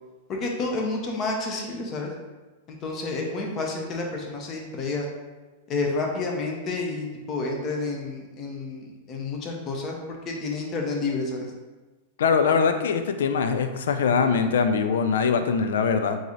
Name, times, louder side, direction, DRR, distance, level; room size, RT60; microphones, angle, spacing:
voice 1, 0.3-2.1 2.7-5.1 5.7-11.5, left 3 dB, 35° left, 1 dB, 0.8 m, -30 dB
voice 2, 12.2-16.2, left 5 dB, 75° left, 8 dB, 0.3 m, -22 dB
3.8 x 2.6 x 3.1 m, 1.2 s
hypercardioid pair, 105°, 0 cm